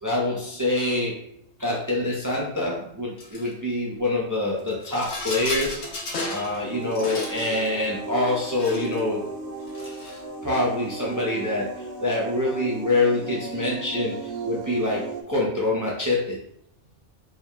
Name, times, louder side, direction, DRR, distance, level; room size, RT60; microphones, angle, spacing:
voice 1, 0.0-1.2 1.6-6.0 6.3-9.2 10.4-16.4, left 2 dB, 20° right, -4 dB, 0.5 m, -25 dB
Rattle, 3.2-3.5 4.6-6.5 6.8-7.5 8.3-9.0 9.6-10.3, left 2 dB, 55° left, 1.0 m, -36 dB
sound 1, 5.5-7.9 8.2-9.2 9.6-9.7, left 2 dB, 90° left, 1.4 m, -38 dB
sound 2, 6.6-15.2, right 3 dB, 75° right, 0.9 m, -35 dB
4.5 x 3.4 x 2.3 m, 0.71 s
omnidirectional pair, 1.3 m